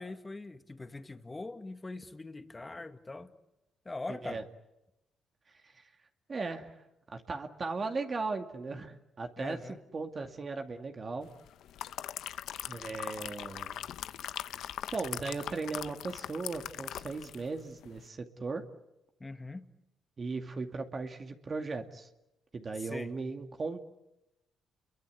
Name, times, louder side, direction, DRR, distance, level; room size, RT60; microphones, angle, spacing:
voice 1, 0.0-3.3 3.9-4.4 9.4-9.8 19.2-19.7 22.8-23.1, left 2 dB, 20° left, 1.9 m, -42 dB
voice 2, 4.1-4.4 5.5-5.9 6.3-6.8 7.1-11.3 12.7-13.8 14.9-18.6 20.2-22.1 22.5-23.9, right 3 dB, 35° right, 2.3 m, -37 dB
sound 1, 11.5-17.5 17.8-18.0, left 11 dB, 80° left, 0.9 m, -41 dB
30.0 x 23.0 x 8.3 m
cardioid pair, 90°, 0 cm